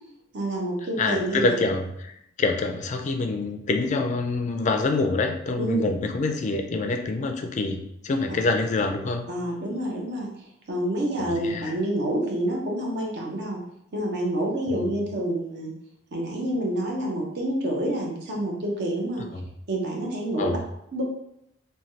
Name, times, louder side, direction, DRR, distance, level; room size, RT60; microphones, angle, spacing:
voice 1, 0.3-1.5 5.6-5.9 9.3-10.3 10.7-13.6 13.9-15.7 16.1-19.3 19.7-20.6 20.9-21.0, right 1 dB, 60° right, -1 dB, 0.7 m, -28 dB
voice 2, 1.0-1.9 2.4-7.8 8.0-9.2 11.2-11.7 14.7-14.9 19.3-19.4 20.4-20.6, left 3 dB, 40° left, 5 dB, 0.3 m, -26 dB
3.1 x 2.2 x 2.7 m, 0.78 s
head